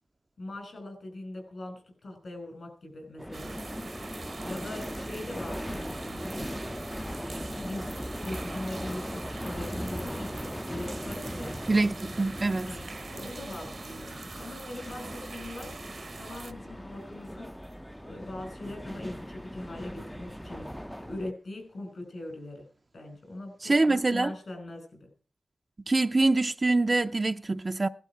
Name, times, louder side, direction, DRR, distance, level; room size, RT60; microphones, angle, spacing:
voice 1, 0.4-3.9 4.4-6.6 7.2-11.6 12.6-12.8 13.1-15.8 16.2-17.5 18.0-20.7 21.0-22.6 22.9-25.1, left 1 dB, 70° left, 5.6 m, -41 dB
sound 1, 3.2-21.3, equal, 5° left, 0.6 m, -39 dB
sound 2, 3.3-16.5, right 4 dB, 65° right, 1.1 m, -44 dB
voice 2, 11.7-12.7 23.6-24.3 25.9-27.9, right 2 dB, 40° right, 0.6 m, -24 dB
16.5 x 12.0 x 4.8 m
wide cardioid pair, 75°, 0 cm